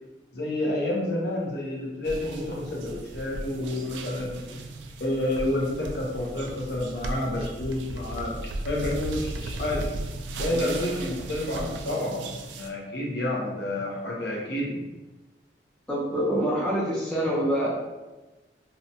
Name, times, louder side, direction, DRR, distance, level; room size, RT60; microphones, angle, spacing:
voice 1, 0.3-4.4 5.0-8.3 8.6-9.9 10.4-12.2 12.5-14.8, left 1 dB, 70° left, -2 dB, 0.6 m, -29 dB
sound 1, 2.1-12.7, right 2 dB, 85° right, 0.3 m, -36 dB
voice 2, 15.9-17.7, equal, 5° left, -7 dB, 0.5 m, -25 dB
2.7 x 2.1 x 2.6 m, 1.1 s
head